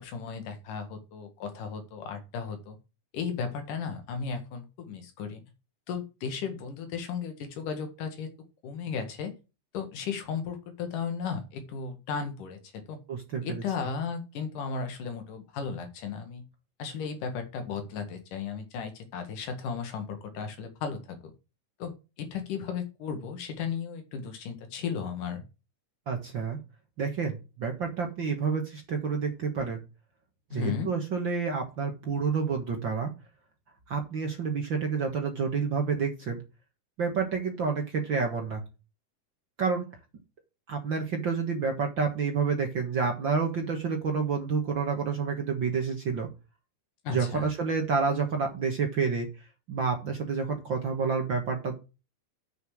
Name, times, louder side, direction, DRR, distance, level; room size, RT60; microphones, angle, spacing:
voice 1, 0.0-2.8 3.1-5.4 5.9-8.3 8.6-9.3 9.7-13.0 13.4-16.4 16.8-21.2 21.8-25.4 30.5-30.9 47.0-47.5, left 6 dB, 80° left, 7 dB, 3.4 m, -35 dB
voice 2, 13.1-13.6 26.1-26.6 27.0-29.8 30.5-33.1 33.9-36.4 37.0-38.6 39.6-39.8 40.7-46.3 47.1-49.3 49.7-51.8, right 5 dB, 45° right, 3 dB, 1.8 m, -29 dB
7.8 x 6.8 x 6.3 m, 0.30 s
omnidirectional pair, 3.7 m